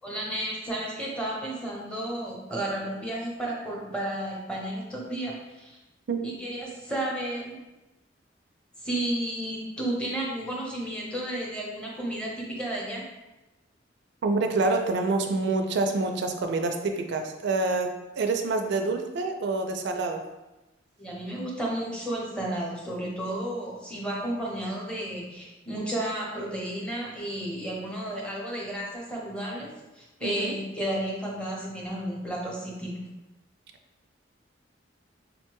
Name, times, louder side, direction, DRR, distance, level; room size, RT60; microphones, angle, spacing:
voice 1, 0.0-5.8 6.2-7.6 8.8-13.0 21.0-29.7 30.0-33.0, right 1 dB, 5° left, -4 dB, 0.8 m, -32 dB
voice 2, 14.2-20.2 30.2-30.5, right 3 dB, 65° right, 4 dB, 0.4 m, -27 dB
5.1 x 2.1 x 3.0 m, 1.0 s
head